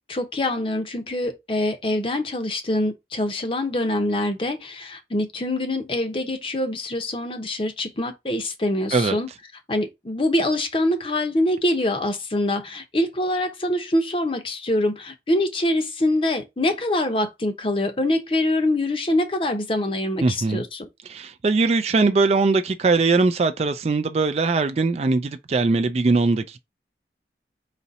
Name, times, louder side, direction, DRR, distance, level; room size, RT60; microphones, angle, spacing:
voice 1, 0.1-9.3 9.7-20.9, left 1 dB, 30° left, 0.7 m, -24 dB
voice 2, 20.2-20.6 21.0-26.6, right 3 dB, 35° right, 0.3 m, -21 dB
4.1 x 2.8 x 4.0 m
head